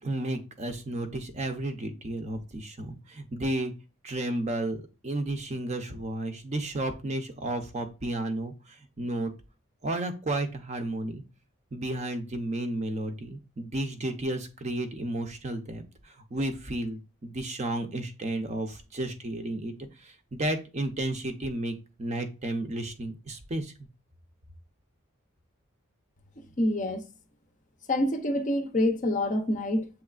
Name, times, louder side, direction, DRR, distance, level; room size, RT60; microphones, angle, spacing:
voice 1, 0.0-3.7 4.0-9.3 9.8-11.2 11.7-19.7 20.0-21.7 22.0-23.7, right 1 dB, 35° right, 0.5 m, -32 dB
voice 2, 26.6-27.0 27.9-30.0, left 1 dB, 35° left, 0.5 m, -27 dB
7.2 x 3.1 x 2.3 m
head